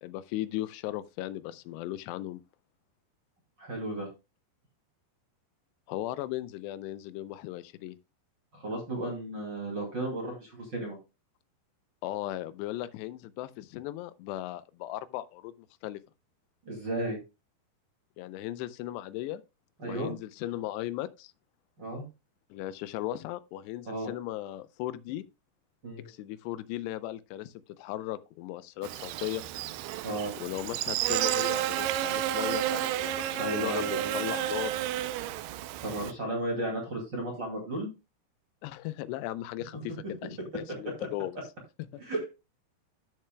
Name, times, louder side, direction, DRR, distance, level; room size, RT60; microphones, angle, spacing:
voice 1, 0.0-2.4 5.9-8.0 12.0-16.0 18.2-19.4 19.8-21.3 22.5-25.2 26.1-29.4 30.4-34.8 38.6-41.3 41.9-42.0, left 14 dB, 90° left, 2.7 m, -37 dB
voice 2, 3.6-4.1 8.5-11.0 16.6-17.2 19.8-20.1 21.8-22.0 23.9-24.1 25.8-26.1 30.0-30.3 33.4-34.2 35.8-37.9 42.0-42.2, right 1 dB, 30° right, 2.6 m, -34 dB
Buzz, 28.8-36.1, right 13 dB, 80° right, 2.6 m, -31 dB
13.5 x 6.7 x 2.2 m
omnidirectional pair, 4.8 m